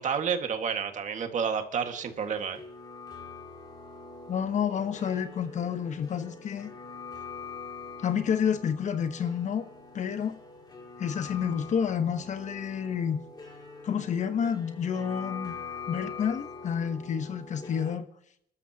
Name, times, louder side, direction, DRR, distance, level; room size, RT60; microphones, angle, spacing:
voice 1, 0.0-2.6, right 6 dB, 45° right, 1.9 m, -30 dB
sound 1, 1.8-18.0, left 4 dB, 25° left, 2.8 m, -44 dB
voice 2, 4.3-6.7 8.0-9.6 9.9-10.4 11.0-13.2 13.8-15.5 15.9-18.1, left 7 dB, 45° left, 1.2 m, -29 dB
28.5 x 13.0 x 2.9 m
cardioid pair, 110°, 17 cm